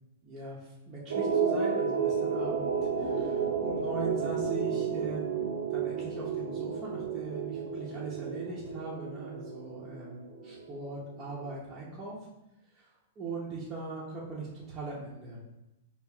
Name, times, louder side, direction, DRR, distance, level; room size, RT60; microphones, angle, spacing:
voice 1, 0.2-12.1 12.7-12.9 13.2-15.4, right 3 dB, 20° right, -7 dB, 0.7 m, -40 dB
sound 1, 1.1-11.6, right 6 dB, 85° right, 0.6 m, -32 dB
5.1 x 2.3 x 2.3 m, 0.93 s
hypercardioid pair, 145°, 0 cm